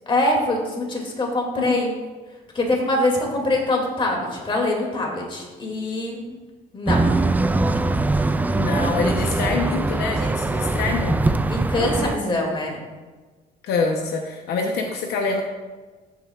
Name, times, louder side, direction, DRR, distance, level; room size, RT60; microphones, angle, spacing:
voice 1, 0.1-2.0 2.5-6.4 6.7-7.1 11.5-12.8, left 1 dB, 30° left, 0 dB, 2.5 m, -23 dB
sound 1, 6.9-12.2, right 2 dB, 10° right, 0.4 m, -22 dB
voice 2, 8.6-11.4 13.6-15.4, left 4 dB, 75° left, 2 dB, 0.9 m, -25 dB
14.0 x 7.5 x 2.4 m, 1.3 s
cardioid pair, 110°, 17 cm